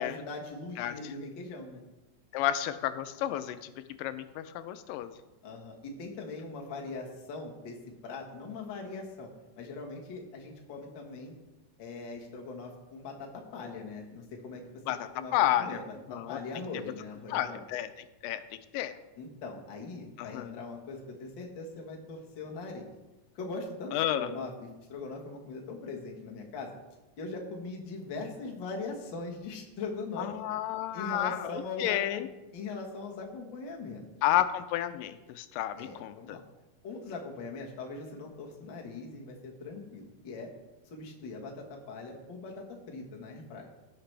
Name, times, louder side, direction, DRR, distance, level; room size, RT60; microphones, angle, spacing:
voice 1, 0.0-1.8 5.4-7.8 8.0-9.3 9.6-11.3 11.8-14.8 15.1-15.8 16.1-17.6 19.2-22.9 23.3-26.7 27.2-30.4 30.9-32.3 32.5-34.1 35.8-36.4 36.8-40.5 40.9-43.7, left 3 dB, 50° left, 0 dB, 1.5 m, -41 dB
voice 2, 2.3-3.7 4.0-5.1 14.9-15.8 16.1-16.4 17.3-17.9 18.2-18.4 18.7-18.9 20.2-20.6 23.9-24.3 30.2-32.3 34.2-36.4, left 12 dB, 85° left, 11 dB, 2.2 m, -31 dB
16.5 x 5.9 x 3.3 m, 1.0 s
omnidirectional pair, 3.9 m